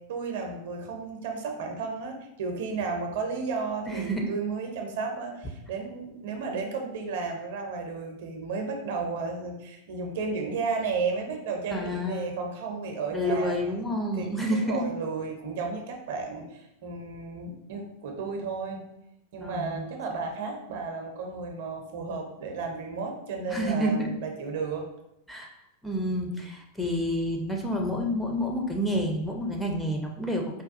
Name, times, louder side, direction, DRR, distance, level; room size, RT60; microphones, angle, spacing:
voice 1, 0.0-18.8 19.3-24.8, right 4 dB, 55° right, 2 dB, 0.5 m, -33 dB
voice 2, 3.9-4.3 11.7-12.3 13.1-14.8 19.4-19.9 23.5-24.1 25.3-25.5 25.8-30.6, equal, ahead, -1 dB, 0.4 m, -29 dB
3.9 x 2.2 x 2.5 m, 0.84 s
figure-of-eight pair, 90°, 0 cm